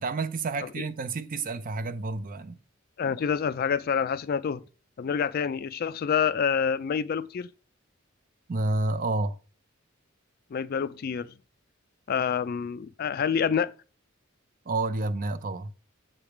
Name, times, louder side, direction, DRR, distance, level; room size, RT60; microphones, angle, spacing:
voice 1, 0.0-2.6 8.5-9.4 14.7-15.7, right 3 dB, 45° right, 0.5 m, -29 dB
voice 2, 3.0-4.6 5.0-7.5 10.5-11.3 12.1-13.7, left 7 dB, 50° left, 0.3 m, -27 dB
7.1 x 3.3 x 5.8 m
head